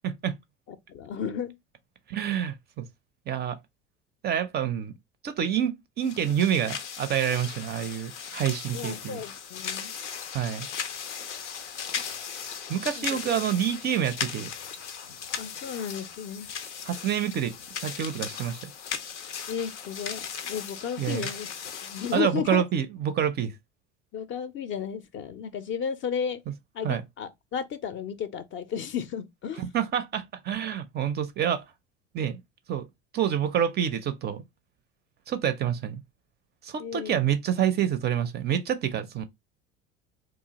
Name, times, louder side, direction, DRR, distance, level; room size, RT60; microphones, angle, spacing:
voice 1, 0.0-0.3 2.1-2.9 3.3-3.6 4.2-4.9 5.2-9.2 10.3-10.7 12.7-14.5 16.8-17.5 17.8-18.7 21.0-21.3 22.1-23.5 26.8-27.0 29.6-31.6 32.1-32.4 32.7-32.8 33.1-34.4 35.3-36.0 36.6-39.2, right 9 dB, 30° right, 0.4 m, -27 dB
voice 2, 0.7-1.6 8.7-9.9 13.0-13.2 15.4-16.5 19.5-21.5 21.8-22.6 24.1-26.4 26.7-29.6 36.8-37.3, left 7 dB, 35° left, 0.4 m, -33 dB
sound 1, 6.0-22.2, left 7 dB, 90° left, 0.5 m, -37 dB
2.8 x 2.3 x 2.8 m
hypercardioid pair, 70°, 34 cm